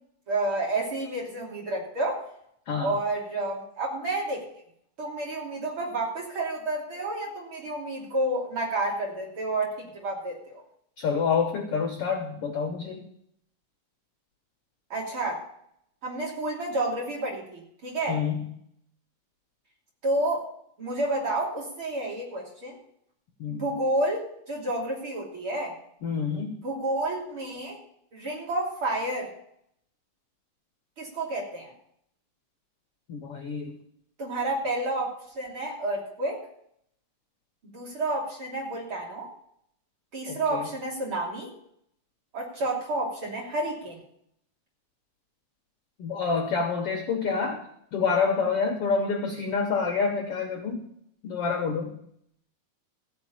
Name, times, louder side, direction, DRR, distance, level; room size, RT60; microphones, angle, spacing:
voice 1, 0.3-2.3 2.8-4.4 5.0-10.6 14.9-15.4 16.0-18.2 20.0-20.5 20.8-22.8 23.5-25.7 26.6-27.8 28.1-29.3 31.0-31.7 34.2-36.4 37.7-39.3 40.1-41.5 42.3-44.0, right 2 dB, 35° right, -3 dB, 3.4 m, -30 dB
voice 2, 11.0-13.1 18.1-18.5 23.4-23.6 26.0-26.5 33.1-33.8 40.3-40.7 46.0-50.9 51.2-52.0, left 5 dB, 75° left, 3 dB, 1.3 m, -28 dB
15.0 x 5.3 x 8.6 m, 0.70 s
omnidirectional pair, 4.3 m